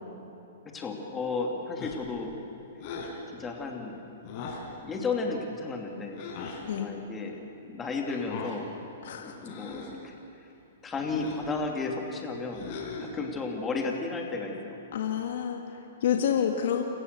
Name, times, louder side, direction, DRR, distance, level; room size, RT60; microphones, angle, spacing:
voice 1, 0.7-2.3 3.3-4.0 4.8-6.2 6.7-8.7 9.1-10.1 10.8-12.7 13.0-14.8, left 4 dB, 15° left, 1 dB, 2.6 m, -33 dB
sound 1, 1.8-2.2 2.8-3.2 4.2-4.7 6.2-6.6 8.1-8.6 9.4-10.0 11.0-11.5 12.5-13.2, left 4 dB, 45° left, 5.0 m, -39 dB
voice 2, 9.0-9.4 14.9-16.8, left 9 dB, 65° left, 3 dB, 1.7 m, -29 dB
27.0 x 15.0 x 6.8 m, 3.0 s
hypercardioid pair, 140°, 0 cm